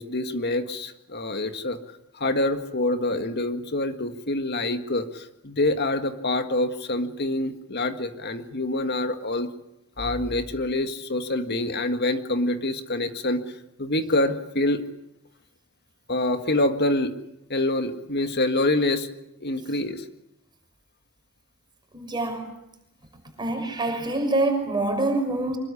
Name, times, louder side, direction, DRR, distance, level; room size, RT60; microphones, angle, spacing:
voice 1, 0.0-1.8 2.1-9.5 10.0-13.4 13.8-14.8 16.1-17.1 17.5-19.1 19.4-20.0, left 2 dB, 50° left, 8 dB, 1.8 m, -26 dB
voice 2, 21.9-22.4 23.4-25.6, right 2 dB, 20° right, 4 dB, 6.0 m, -25 dB
25.5 x 22.0 x 9.9 m, 0.82 s
head